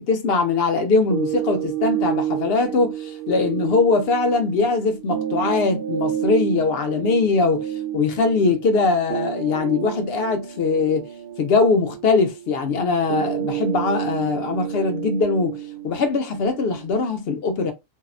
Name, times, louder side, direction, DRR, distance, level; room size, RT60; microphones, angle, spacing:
voice 1, 0.0-7.7 7.9-11.1 11.4-15.6 15.8-17.7, left 4 dB, 65° left, 0.6 m, -21 dB
sound 1, 1.1-17.1, right 10 dB, 60° right, 0.6 m, -30 dB
2.6 x 2.0 x 2.4 m
omnidirectional pair, 1.4 m